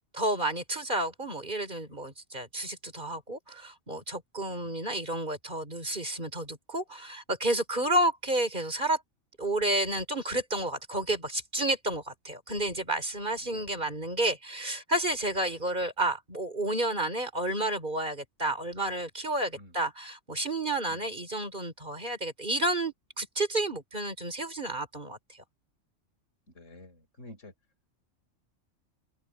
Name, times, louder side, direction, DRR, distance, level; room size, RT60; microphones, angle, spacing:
voice 1, 0.1-9.0 9.4-25.2, right 1 dB, 40° right, 4.5 m, -31 dB
voice 2, 4.5-4.8 13.5-13.9 19.5-19.8 20.9-21.1 26.5-27.5, left 1 dB, 75° left, 5.7 m, -50 dB
open air
omnidirectional pair, 1.3 m